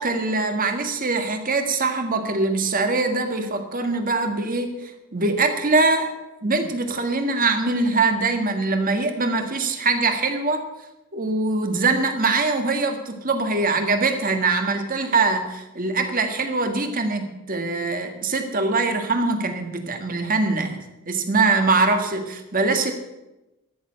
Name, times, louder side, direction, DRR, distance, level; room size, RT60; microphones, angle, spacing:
voice 1, 0.0-6.1 6.4-10.6 11.1-22.9, right 3 dB, 40° right, 6 dB, 1.7 m, -23 dB
13.5 x 6.9 x 9.7 m, 0.99 s
head